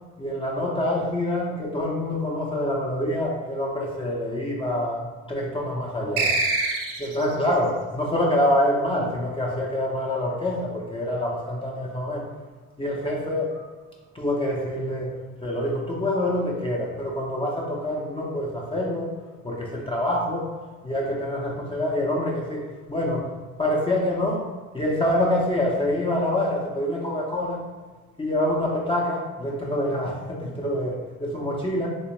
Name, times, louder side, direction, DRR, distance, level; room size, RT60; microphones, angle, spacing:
voice 1, 0.2-6.4 7.0-12.3 12.8-13.6 14.1-15.1 15.4-19.1 19.4-20.5 20.8-23.3 23.6-24.5 24.7-27.6 28.2-31.9, left 1 dB, 20° left, -3 dB, 0.5 m, -26 dB
sound 1, 6.2-7.3, right 3 dB, 80° right, 0.6 m, -24 dB
3.2 x 2.9 x 3.0 m, 1.4 s
cardioid pair, 90°, 30 cm